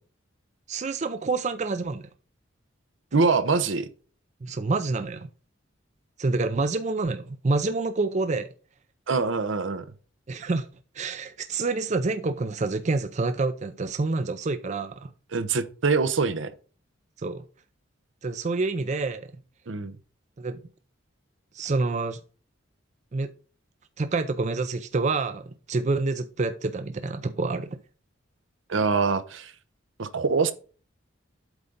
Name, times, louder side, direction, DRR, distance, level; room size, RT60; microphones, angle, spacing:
voice 1, 0.7-2.1 4.4-5.3 6.2-8.5 10.3-10.7 10.9-15.1 17.2-17.4 18.2-19.3 20.4-20.6 21.5-22.2 23.1-23.3 24.0-27.8, right 3 dB, 35° right, 0.4 m, -27 dB
voice 2, 3.1-3.9 9.1-9.9 15.3-16.5 19.7-19.9 28.7-29.5 30.0-30.5, right 4 dB, 75° right, 0.7 m, -24 dB
8.1 x 3.7 x 5.3 m
head